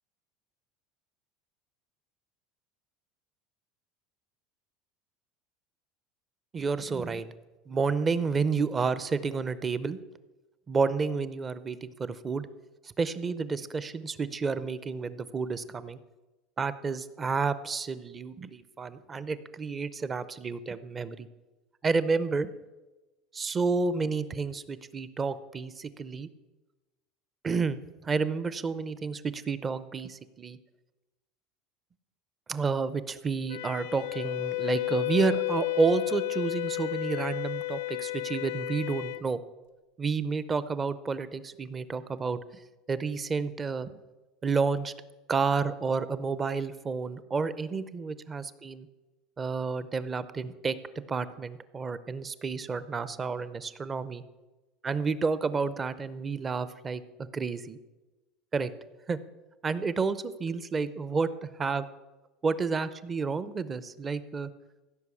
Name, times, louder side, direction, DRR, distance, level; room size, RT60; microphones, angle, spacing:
voice 1, 6.5-7.2 7.7-10.0 10.7-12.5 13.0-16.0 16.6-21.3 21.8-22.5 23.3-26.3 27.4-30.6 32.5-39.4 40.0-42.4 42.9-43.9 44.4-44.9 45.3-48.9 49.4-50.8 51.1-54.2 54.8-57.0 57.3-57.8 58.5-58.7 59.1-59.2 59.6-61.9 62.4-64.5, right 4 dB, 20° right, 15 dB, 0.5 m, -30 dB
Wind instrument woodwind instrument, 33.5-39.2, left 21 dB, 75° left, 0.5 m, -32 dB
16.0 x 5.8 x 8.4 m, 1.1 s
cardioid pair, 165°, 0 cm